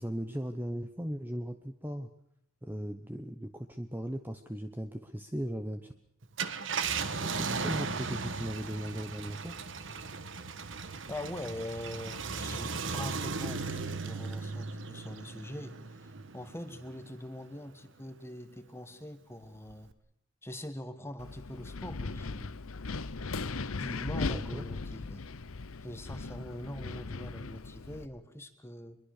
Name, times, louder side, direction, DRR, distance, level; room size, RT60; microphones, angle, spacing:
voice 1, 0.0-2.1 2.6-5.9 7.2-9.6 24.3-24.6, equal, 10° right, 7 dB, 0.9 m, -38 dB
Car, 6.2-17.1 17.6-17.7 19.7-19.9, right 4 dB, 60° right, 1.4 m, -37 dB
voice 2, 11.1-19.9 20.4-22.6 23.8-25.3 25.8-29.0, left 1 dB, 10° left, 9 dB, 1.4 m, -43 dB
Wind, 21.2-28.1, left 3 dB, 80° left, 0.9 m, -38 dB
23.5 x 22.0 x 6.6 m, 0.73 s
head